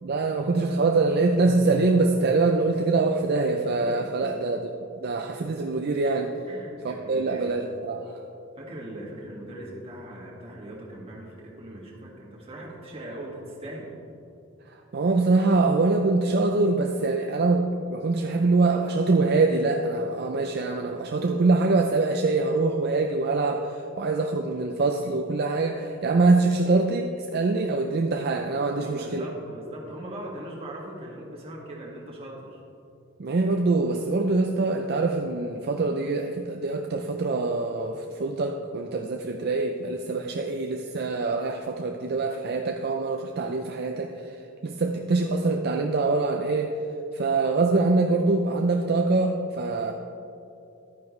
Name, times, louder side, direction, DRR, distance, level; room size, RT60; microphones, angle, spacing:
voice 1, 0.0-4.6 5.0-6.3 6.8-8.2 14.9-29.2 33.2-44.3 44.6-46.7 47.1-49.9, right 3 dB, 50° right, 4 dB, 0.5 m, -24 dB
voice 2, 3.8-4.4 6.5-7.5 8.6-14.0 28.8-32.6, right 1 dB, 30° right, -4 dB, 1.9 m, -40 dB
11.5 x 9.2 x 3.2 m, 2.7 s
head